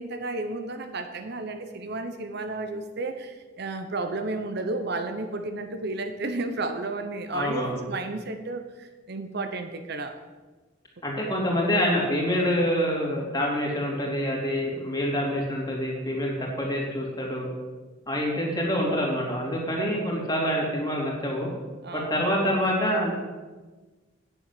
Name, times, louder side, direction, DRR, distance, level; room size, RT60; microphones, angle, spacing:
voice 1, 0.0-10.2 21.8-22.1, right 2 dB, 55° right, 7 dB, 0.8 m, -32 dB
voice 2, 7.3-7.8 11.0-17.5 18.1-21.5 21.9-23.2, equal, 20° left, -2 dB, 2.8 m, -26 dB
9.0 x 7.1 x 7.6 m, 1.3 s
head